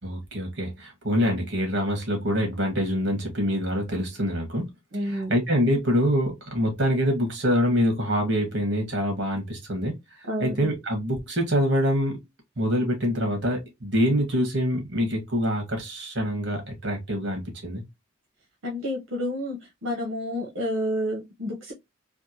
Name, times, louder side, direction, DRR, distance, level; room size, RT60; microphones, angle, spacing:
voice 1, 0.0-4.7 5.0-12.2 12.6-17.8, equal, 55° right, 1.5 m, -25 dB
voice 2, 4.9-5.3 10.2-10.7 18.6-21.7, equal, 75° right, 0.9 m, -30 dB
3.4 x 2.5 x 2.7 m
head